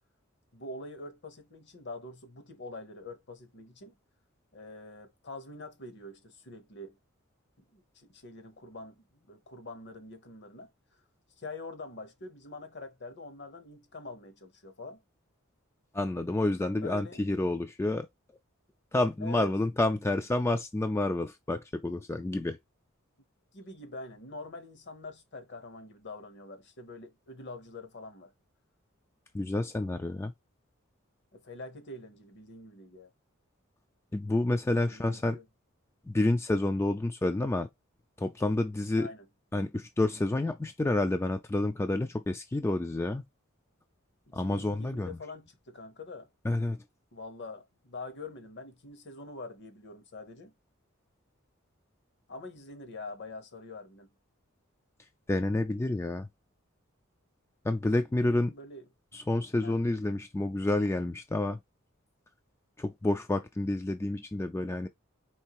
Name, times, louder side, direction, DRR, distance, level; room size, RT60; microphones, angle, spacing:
voice 1, 0.5-4.0 4.5-7.0 7.6-10.7 11.4-15.0 16.8-17.2 19.2-19.5 23.5-28.3 31.3-33.1 34.9-35.5 39.0-39.3 44.3-46.3 47.1-50.5 52.3-54.1 58.2-58.8 59.6-59.8, left 2 dB, 55° left, 1.0 m, -45 dB
voice 2, 15.9-18.1 18.9-22.6 29.3-30.3 34.1-35.4 36.1-37.7 38.2-39.1 39.5-43.2 44.3-45.2 46.4-46.8 55.3-56.3 57.6-58.5 59.1-61.6 62.8-64.9, left 2 dB, 10° left, 0.3 m, -29 dB
4.5 x 3.2 x 2.9 m
head